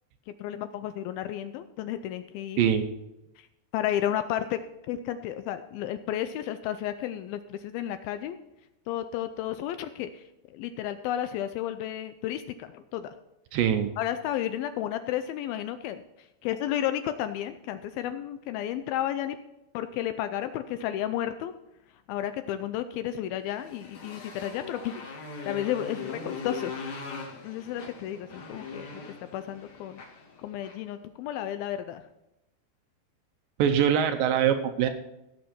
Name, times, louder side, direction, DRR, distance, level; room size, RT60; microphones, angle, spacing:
voice 1, 0.3-2.6 3.4-3.5 3.7-4.6 4.9-8.4 8.9-13.2 14.0-19.4 19.7-21.5 22.1-26.7 27.4-29.0 29.3-30.0 30.4-32.1, left 11 dB, 80° left, 10 dB, 2.2 m, -32 dB
voice 2, 2.6-2.9 13.5-13.9 33.6-34.9, right 9 dB, 80° right, 7 dB, 2.1 m, -23 dB
Motorcycle, 23.5-30.9, left 4 dB, 55° left, 3.2 m, -40 dB
16.5 x 6.7 x 4.3 m, 0.90 s
omnidirectional pair, 4.6 m